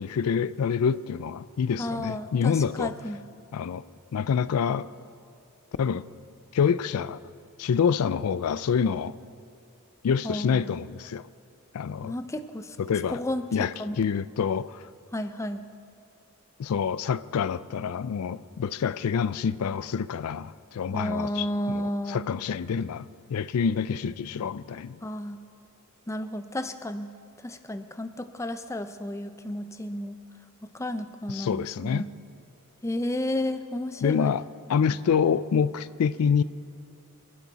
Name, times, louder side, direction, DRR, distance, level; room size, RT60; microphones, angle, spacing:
voice 1, 0.0-2.9 3.5-3.8 4.1-4.9 5.8-6.0 6.5-7.2 7.6-9.2 10.0-11.3 11.7-12.1 12.8-13.2 13.5-14.9 16.6-25.0 31.3-32.1 34.0-34.4 34.7-36.4, left 6 dB, 80° left, 0.4 m, -27 dB
voice 2, 1.8-3.2 10.2-10.8 12.0-12.8 13.1-14.0 15.1-15.6 20.9-22.3 25.0-25.4 26.1-27.1 27.4-30.2 30.7-32.1 32.8-34.3 34.9-35.0, left 1 dB, 15° left, 0.5 m, -32 dB
25.0 x 11.0 x 4.1 m
head